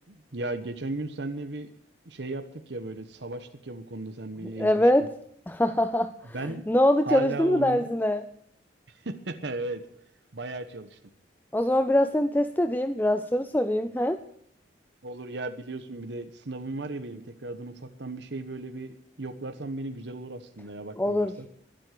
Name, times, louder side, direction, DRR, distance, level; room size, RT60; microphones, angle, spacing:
voice 1, 0.1-1.7 2.1-4.8 6.3-6.7 7.1-7.9 8.9-9.8 10.3-11.0 15.0-21.5, right 2 dB, 70° right, 8 dB, 1.1 m, -36 dB
voice 2, 4.6-5.1 5.5-6.1 6.7-8.2 11.5-14.2 21.0-21.3, left 1 dB, 10° left, 10 dB, 0.5 m, -23 dB
21.5 x 7.9 x 6.7 m, 0.70 s
head